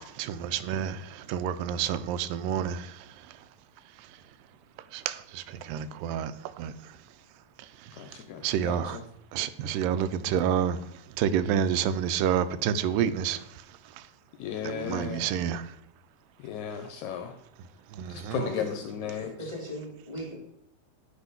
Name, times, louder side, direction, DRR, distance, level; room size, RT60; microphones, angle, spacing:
voice 1, 0.0-3.1 4.9-6.7 7.8-7.9 8.4-9.0 9.3-10.9 11.2-13.5 14.6-15.7 17.9-18.4, right 8 dB, 90° right, 2.2 m, -29 dB
voice 2, 8.0-9.0 14.4-15.3 16.4-17.3 18.1-19.3, left 8 dB, 80° left, 1.8 m, -35 dB
voice 3, 19.1-20.4, equal, 10° right, 1.6 m, -38 dB
9.5 x 3.5 x 5.5 m
omnidirectional pair, 3.8 m